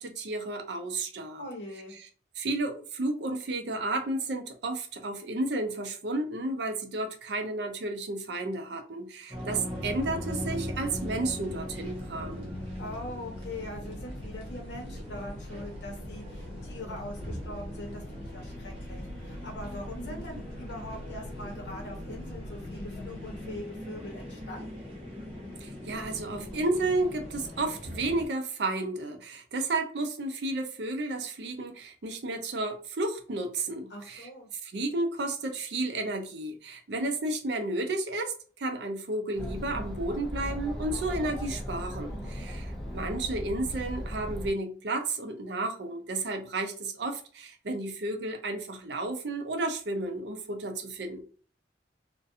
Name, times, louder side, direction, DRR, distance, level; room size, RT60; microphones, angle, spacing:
voice 1, 0.0-1.4 2.4-12.6 25.6-34.3 34.6-51.2, right 2 dB, 70° right, 0.5 m, -32 dB
voice 2, 1.4-1.9 12.8-24.7 33.9-34.5 42.1-42.4, left 1 dB, 75° left, 0.9 m, -42 dB
sound 1, 9.3-28.3, equal, 30° right, 0.8 m, -41 dB
sound 2, 9.7-23.6, left 1 dB, 90° left, 0.4 m, -44 dB
Chatter, 39.4-44.5, equal, 5° left, 0.5 m, -37 dB
2.4 x 2.2 x 2.6 m
head